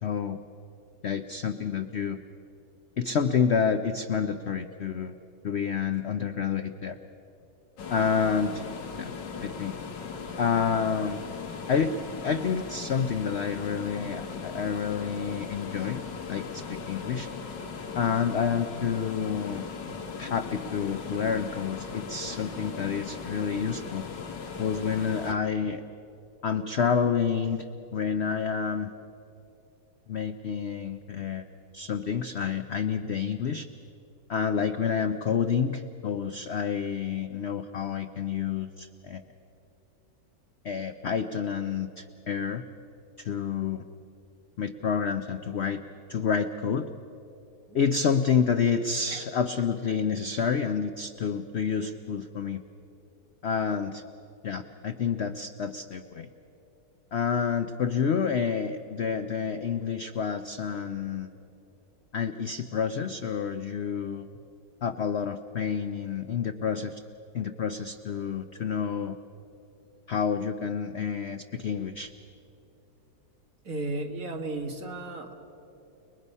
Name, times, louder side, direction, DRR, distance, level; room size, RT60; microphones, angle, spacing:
voice 1, 0.0-0.4 1.0-2.2 3.0-5.2 5.4-7.0 7.9-8.6 9.0-9.1 9.4-9.8 10.4-11.2 11.7-12.0 12.2-16.0 16.3-17.3 17.9-19.7 20.2-24.1 24.6-25.8 26.4-27.7 27.9-28.9 30.1-31.5 31.7-33.7 34.3-39.2 40.6-42.6 43.2-43.8 44.6-45.8 46.1-46.9 47.7-52.6 53.4-54.0 54.4-56.3 57.1-61.3 62.1-64.3 64.8-67.0 67.3-69.2 70.1-72.1, left 6 dB, 60° left, 9 dB, 0.7 m, -29 dB
sound 1, 7.8-25.3, left 5 dB, 80° left, 2.1 m, -38 dB
voice 2, 73.6-75.3, right 2 dB, 50° right, 3 dB, 2.1 m, -34 dB
30.0 x 21.5 x 5.5 m, 2.8 s
omnidirectional pair, 1.9 m